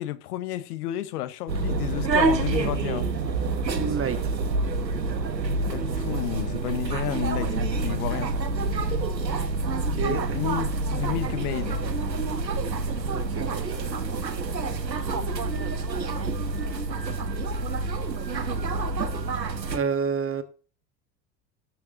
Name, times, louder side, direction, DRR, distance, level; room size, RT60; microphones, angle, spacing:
voice 1, 0.0-3.1 5.7-8.3 10.1-11.8 15.1-15.4, left 14 dB, 65° left, 1.1 m, -32 dB
sound 1, 1.5-19.8, right 3 dB, 90° right, 1.2 m, -27 dB
voice 2, 3.7-4.3 9.4-10.4 13.1-14.2 19.7-20.4, right 5 dB, 25° right, 1.6 m, -31 dB
19.0 x 7.6 x 2.7 m
figure-of-eight pair, 70°, 49 cm